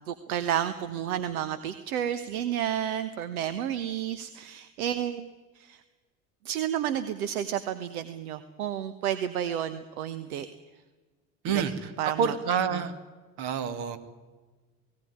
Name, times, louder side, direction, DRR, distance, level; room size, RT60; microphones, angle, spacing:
voice 1, 0.1-5.3 5.6-5.8 6.4-10.5 11.5-11.6 12.0-12.4 12.7-12.8, right 10 dB, 80° right, 12 dB, 1.1 m, -31 dB
voice 2, 12.2-12.9 13.4-14.0, right 7 dB, 60° right, 8 dB, 2.4 m, -27 dB
18.5 x 17.5 x 9.7 m, 1.3 s
hypercardioid pair, 65°, 43 cm